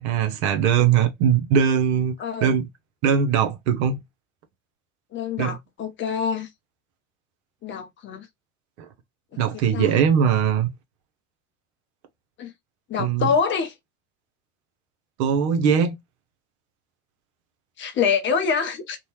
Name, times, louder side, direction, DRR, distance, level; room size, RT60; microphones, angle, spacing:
voice 1, 0.0-2.2 2.4-2.7 3.0-4.0 5.4-5.6 9.4-10.7 13.0-13.3 15.2-16.0, right 7 dB, 55° right, 0.7 m, -20 dB
voice 2, 2.2-2.6 5.1-6.5 7.6-8.3 9.7-10.0 12.4-12.5 12.9-13.7 17.8-19.0, left 6 dB, 30° left, 0.6 m, -25 dB
2.7 x 2.2 x 3.0 m
figure-of-eight pair, 60°, 39 cm